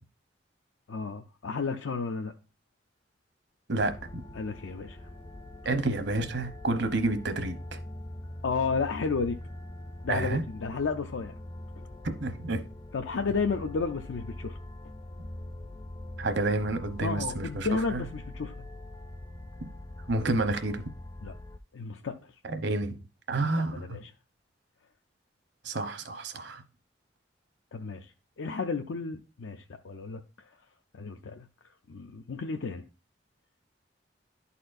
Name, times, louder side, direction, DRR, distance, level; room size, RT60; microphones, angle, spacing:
voice 1, 0.9-2.3 4.3-5.0 8.4-9.4 10.0-11.3 12.9-14.6 17.0-18.5 21.2-21.3 21.7-22.1 23.3-24.1 27.7-28.1 28.4-30.2 30.9-31.5 31.9-32.8, left 4 dB, 90° left, 0.5 m, -32 dB
voice 2, 3.7-4.2 5.6-7.8 10.1-10.4 12.2-12.6 16.2-18.0 20.1-20.8 22.4-23.0 23.3-24.0 25.6-26.6, right 2 dB, 65° right, 0.9 m, -29 dB
sound 1, 3.8-21.6, left 1 dB, 20° left, 0.4 m, -43 dB
11.5 x 4.2 x 2.5 m
head